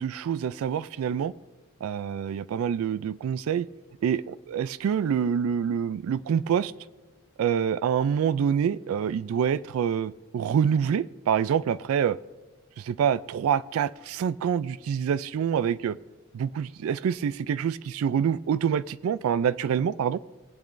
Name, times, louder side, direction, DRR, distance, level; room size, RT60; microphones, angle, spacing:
voice 1, 0.0-1.3 1.8-3.7 4.0-6.7 7.4-12.2 12.8-16.0 16.3-20.2, right 8 dB, 80° right, 17 dB, 0.3 m, -26 dB
20.0 x 8.7 x 2.6 m, 1.3 s
head